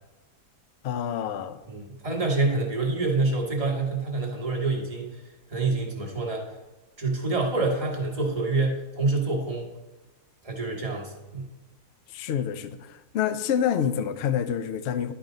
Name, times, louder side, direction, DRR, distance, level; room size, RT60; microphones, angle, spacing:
voice 1, 0.8-1.6 12.1-15.1, left 8 dB, 75° left, 11 dB, 0.6 m, -27 dB
voice 2, 1.7-5.2 5.5-6.5 7.0-9.7 10.4-11.5, right 3 dB, 25° right, -2 dB, 1.3 m, -27 dB
11.0 x 4.8 x 3.8 m, 1.1 s
omnidirectional pair, 1.7 m